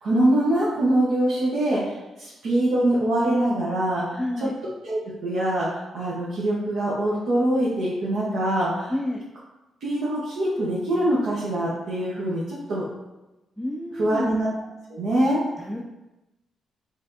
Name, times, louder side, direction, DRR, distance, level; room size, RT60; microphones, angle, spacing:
voice 1, 0.0-4.5 4.8-8.9 9.8-12.8 13.9-14.5 14.9-15.4, right 1 dB, 75° right, -7 dB, 1.0 m, -24 dB
voice 2, 4.2-4.5 8.9-9.2 13.6-14.4 15.6-15.8, left 1 dB, ahead, 0 dB, 0.4 m, -29 dB
4.4 x 3.4 x 2.7 m, 1.0 s
cardioid pair, 100°, 0 cm